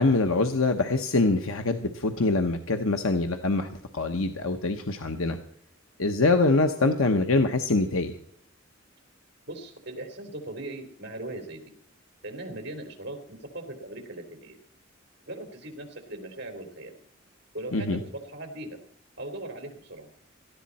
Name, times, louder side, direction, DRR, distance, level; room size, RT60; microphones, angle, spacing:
voice 1, 0.0-3.7 3.9-5.4 6.0-8.1 17.7-18.0, left 3 dB, 80° left, 6 dB, 1.1 m, -24 dB
voice 2, 9.5-11.6 12.2-14.6 15.2-17.0 17.5-18.8 19.2-20.1, right 1 dB, 55° right, 4 dB, 3.9 m, -39 dB
18.0 x 14.0 x 4.3 m, 0.62 s
head